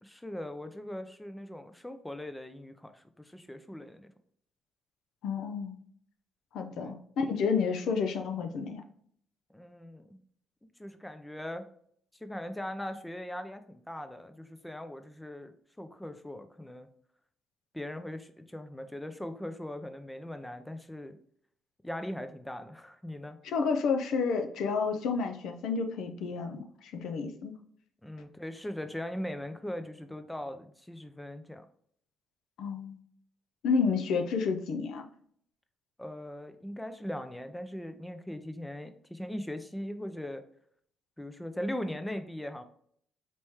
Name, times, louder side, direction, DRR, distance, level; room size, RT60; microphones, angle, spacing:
voice 1, 0.0-4.1 6.8-7.0 9.5-10.2 10.8-11.7 12.2-16.9 17.7-21.2 21.8-23.4 28.0-31.7 36.0-40.4 41.2-42.6, left 1 dB, 5° left, 9 dB, 0.4 m, -40 dB
voice 2, 5.2-5.7 6.5-8.8 23.4-27.5 32.6-33.0 33.6-35.1, left 5 dB, 80° left, 6 dB, 0.5 m, -30 dB
4.2 x 3.1 x 3.4 m, 0.63 s
cardioid pair, 90°, 0 cm